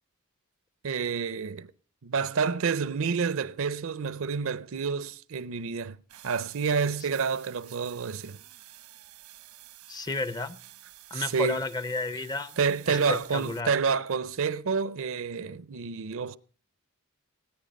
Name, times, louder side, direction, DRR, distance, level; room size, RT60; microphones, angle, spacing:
voice 1, 0.8-1.7 2.0-6.0 6.2-8.4 11.1-11.6 12.6-16.4, right 5 dB, 65° right, 0.6 m, -29 dB
sound 1, 6.1-13.6, right 14 dB, 85° right, 1.1 m, -51 dB
voice 2, 9.9-10.6 11.1-12.6 12.9-13.7, left 2 dB, 20° left, 0.5 m, -32 dB
17.5 x 9.8 x 5.2 m
head